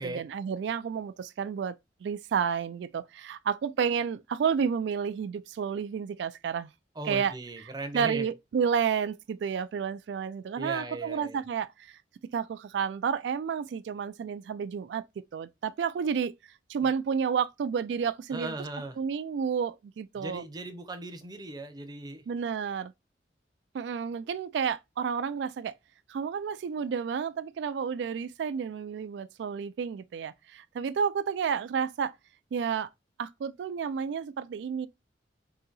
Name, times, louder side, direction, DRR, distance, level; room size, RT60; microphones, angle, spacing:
voice 1, 0.0-1.8 2.0-6.7 7.1-7.3 7.9-12.0 12.3-15.0 15.3-16.3 16.7-18.5 19.0-20.4 22.3-22.9 23.7-25.7 26.1-32.1 32.5-32.9 33.2-34.9, right 7 dB, 75° right, 0.3 m, -31 dB
voice 2, 6.9-8.3 10.6-11.4 16.8-16.9 18.3-19.0 20.2-22.2, right 2 dB, 25° right, 0.6 m, -38 dB
3.9 x 2.7 x 3.9 m
head